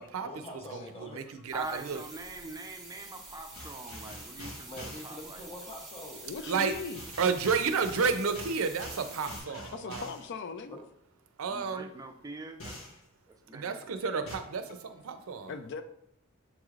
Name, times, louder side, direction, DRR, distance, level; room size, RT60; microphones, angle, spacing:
voice 1, 0.2-1.2 4.7-6.3 10.7-10.8, left 1 dB, 30° left, 0.7 m, -44 dB
voice 2, 0.7-2.0 6.5-6.7 7.2-10.1 11.4-11.9 13.5-15.5, right 5 dB, 90° right, 0.5 m, -31 dB
sound 1, 1.5-9.4, right 2 dB, ahead, 0.9 m, -48 dB
voice 3, 1.5-5.5 11.5-12.8 13.3-13.9, right 2 dB, 15° right, 0.4 m, -43 dB
sound 2, 3.5-5.1 6.7-10.3 12.6-13.0 14.3-14.4, left 1 dB, 90° left, 1.3 m, -45 dB
voice 4, 6.2-7.0 9.5-10.8 14.7-14.8 15.5-15.8, left 5 dB, 55° left, 0.4 m, -39 dB
7.1 x 3.1 x 2.4 m
head